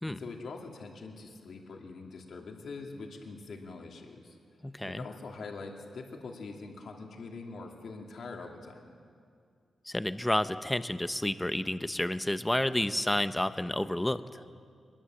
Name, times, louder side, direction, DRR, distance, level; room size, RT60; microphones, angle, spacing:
voice 1, 0.0-4.4 4.8-8.9, left 3 dB, 60° left, 1 dB, 2.6 m, -44 dB
voice 2, 4.6-5.1 9.9-14.4, left 1 dB, 5° left, 12 dB, 0.6 m, -30 dB
24.5 x 21.0 x 7.7 m, 2.2 s
wide cardioid pair, 165°, 0 cm